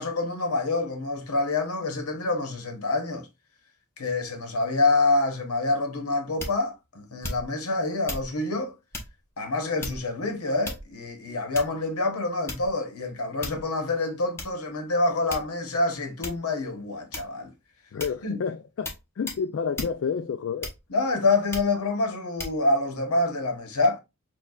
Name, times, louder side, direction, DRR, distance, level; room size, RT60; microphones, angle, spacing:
voice 1, 0.0-3.3 4.0-8.7 9.4-17.5 18.2-18.4 20.9-24.0, left 2 dB, 80° left, 1.0 m, -26 dB
sound 1, 6.4-6.7 7.2-7.6 8.1-8.3 8.9-9.2 9.8-10.2 10.6-11.1 11.5-11.9 12.5-12.8 13.4-13.7 14.4-14.5 15.3-15.7 16.2-16.5 17.1-17.5 18.0-18.2 18.8-19.0 19.3-19.4 19.8-20.0 20.6-21.0 21.5-21.8 22.4-22.6, left 2 dB, 10° left, 0.7 m, -36 dB
voice 2, 17.9-20.7, left 6 dB, 60° left, 0.3 m, -30 dB
6.3 x 2.3 x 2.3 m
head